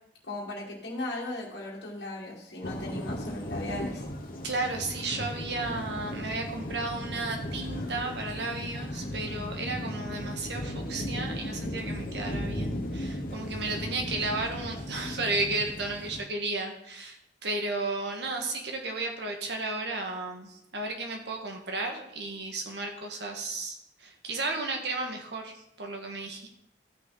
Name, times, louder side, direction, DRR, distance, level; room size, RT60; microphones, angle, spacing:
voice 1, 0.3-4.1, left 1 dB, 65° left, -3 dB, 1.9 m, -37 dB
sound 1, 2.6-16.2, left 1 dB, 50° left, 1.2 m, -36 dB
voice 2, 4.4-26.5, right 2 dB, 65° right, 2 dB, 1.6 m, -33 dB
14.0 x 5.9 x 3.9 m, 0.77 s
head